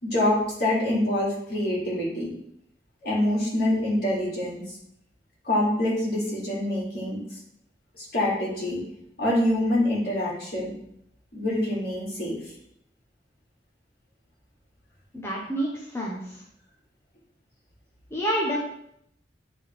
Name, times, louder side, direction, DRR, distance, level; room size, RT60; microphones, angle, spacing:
voice 1, 0.0-2.3 3.0-4.6 5.4-7.2 8.0-8.8 9.2-10.7 11.3-12.4, left 1 dB, 55° left, -6 dB, 2.5 m, -25 dB
voice 2, 15.1-16.4 18.1-18.6, equal, 15° left, -4 dB, 0.9 m, -28 dB
9.1 x 3.8 x 3.5 m, 0.75 s
head